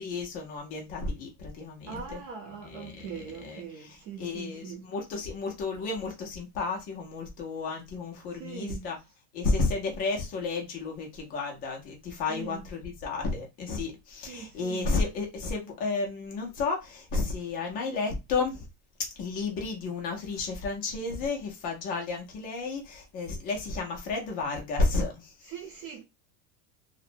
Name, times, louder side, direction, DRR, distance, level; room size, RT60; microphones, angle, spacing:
voice 1, 0.0-2.2 2.6-9.0 9.3-18.7 19.2-25.5, left 3 dB, 20° left, 0.3 m, -32 dB
voice 2, 1.9-4.8 8.3-8.8 12.3-12.6 14.3-15.0 25.4-26.0, right 7 dB, 45° right, 0.6 m, -41 dB
2.5 x 2.1 x 2.6 m
supercardioid pair, 170°, 45 cm